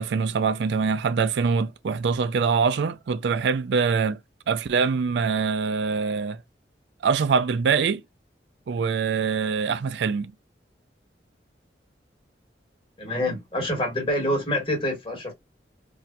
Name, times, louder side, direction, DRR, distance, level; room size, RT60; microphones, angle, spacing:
voice 1, 0.0-4.2 4.5-6.4 7.0-8.0 8.7-10.3, right 5 dB, 70° right, 0.4 m, -24 dB
voice 2, 13.0-15.3, left 1 dB, 30° left, 1.5 m, -26 dB
4.1 x 2.7 x 2.2 m
head